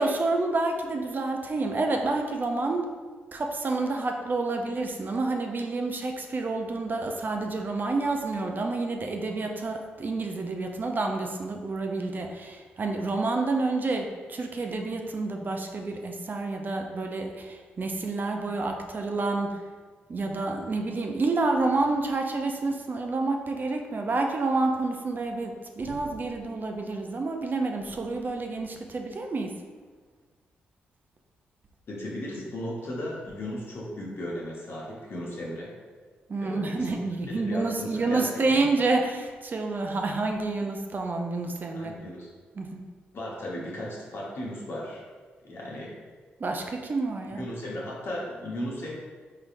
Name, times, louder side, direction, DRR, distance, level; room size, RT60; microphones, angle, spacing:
voice 1, 0.0-2.9 3.3-19.6 20.1-29.5 36.3-41.9 42.6-42.8 46.4-47.4, right 3 dB, 45° right, 3 dB, 0.5 m, -29 dB
voice 2, 31.9-35.7 36.4-36.9 37.3-38.2 38.5-38.7 41.7-42.3 43.1-45.0 45.4-45.9 47.3-48.9, left 1 dB, 60° left, -4 dB, 1.1 m, -36 dB
3.8 x 3.2 x 2.5 m, 1.5 s
hypercardioid pair, 45°, 5 cm